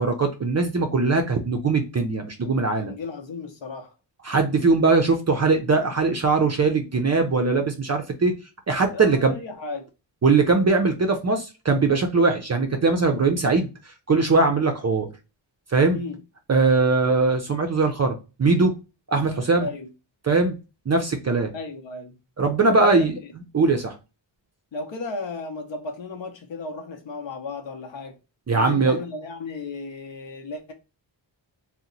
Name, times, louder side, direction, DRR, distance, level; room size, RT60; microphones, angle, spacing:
voice 1, 0.0-2.9 4.2-8.3 8.7-9.3 10.2-13.7 14.1-15.1 15.7-16.0 16.5-18.7 19.1-19.7 20.2-20.6 20.9-21.5 22.4-23.2 23.5-24.0 28.5-29.0, right 3 dB, 40° right, 0.4 m, -21 dB
voice 2, 2.8-3.9 8.9-9.8 15.9-16.2 19.6-19.9 21.5-22.2 22.7-23.1 24.7-28.2 28.5-30.7, left 3 dB, 70° left, 0.7 m, -34 dB
2.8 x 2.1 x 3.7 m
wide cardioid pair, 175°, 47 cm